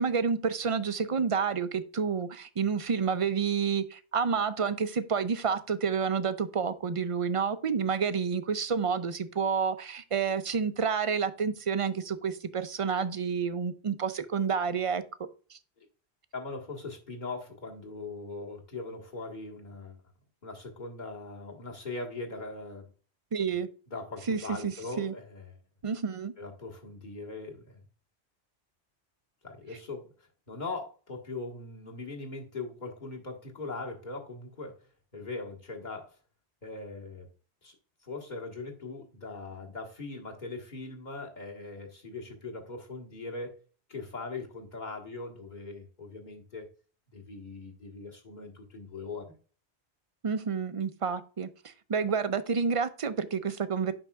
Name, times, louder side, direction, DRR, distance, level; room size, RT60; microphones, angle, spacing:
voice 1, 0.0-15.0 15.5-15.6 23.3-23.7 24.3-25.1 25.8-26.3 50.2-53.9, right 6 dB, 40° right, 0.5 m, -29 dB
voice 2, 16.3-20.0 20.4-22.9 23.5-23.6 23.9-25.6 26.4-27.8 29.4-30.1 30.5-34.8 35.1-36.2 36.6-37.3 37.6-37.7 38.0-43.6 43.9-46.7 47.1-49.4, left 3 dB, 45° left, 1.7 m, -40 dB
8.8 x 5.6 x 2.3 m
omnidirectional pair, 1.1 m